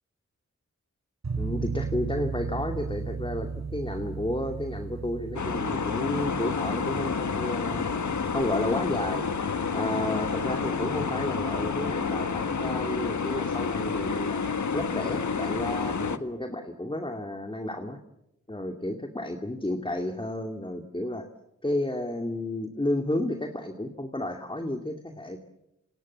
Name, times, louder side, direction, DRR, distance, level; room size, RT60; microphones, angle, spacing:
sound 1, 1.2-12.0, right 5 dB, 60° right, 4.1 m, -37 dB
voice 1, 1.4-7.9 8.3-9.3 9.7-14.4 14.7-18.0 18.5-21.3 21.6-25.4, left 1 dB, 15° left, 5 dB, 2.4 m, -32 dB
sound 2, 5.4-16.2, left 5 dB, 70° left, 1.6 m, -29 dB
27.5 x 26.5 x 7.4 m, 0.87 s
cardioid pair, 50°, 30 cm